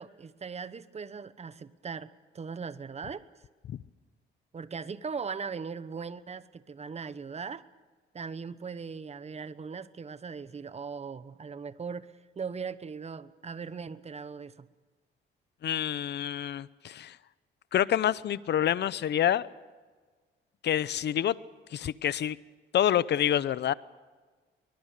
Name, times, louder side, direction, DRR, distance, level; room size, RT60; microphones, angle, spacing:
voice 1, 0.0-3.2 4.5-7.6 8.1-14.7, right 5 dB, 30° right, 15 dB, 1.1 m, -39 dB
voice 2, 15.6-17.2 17.7-19.5 20.6-21.4 21.7-22.4 22.7-23.7, left 10 dB, 60° left, 18 dB, 0.8 m, -27 dB
23.5 x 21.5 x 6.7 m, 1.4 s
cardioid pair, 90°, 20 cm